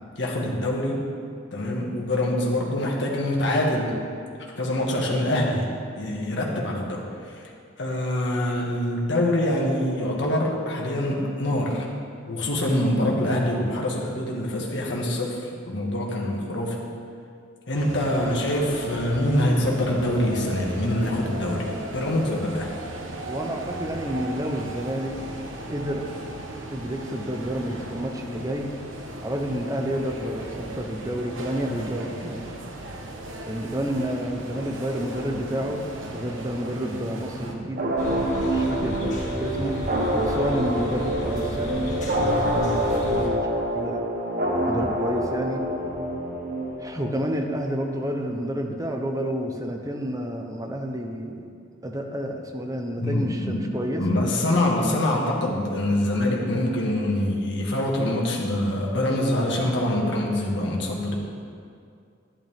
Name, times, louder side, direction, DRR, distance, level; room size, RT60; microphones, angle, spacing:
voice 1, 0.2-1.0 1.5-4.0 4.6-5.7 6.0-7.4 7.8-11.9 12.3-16.8 17.7-22.7 53.0-53.6 54.0-61.2, left 1 dB, 65° left, -2 dB, 1.8 m, -25 dB
sound 1, 17.8-37.6, right 1 dB, 90° right, 1.2 m, -36 dB
voice 2, 23.3-25.2 25.7-26.1 26.7-28.7 29.2-32.5 33.4-35.9 36.1-39.8 40.2-44.0 44.7-45.7 46.8-51.5 51.8-54.2, equal, 20° right, 3 dB, 0.9 m, -30 dB
sound 2, 37.8-47.2, right 1 dB, 50° right, 1.2 m, -26 dB
sound 3, 38.0-43.3, left 1 dB, 40° left, 2.0 m, -34 dB
11.5 x 10.5 x 3.6 m, 2.3 s
head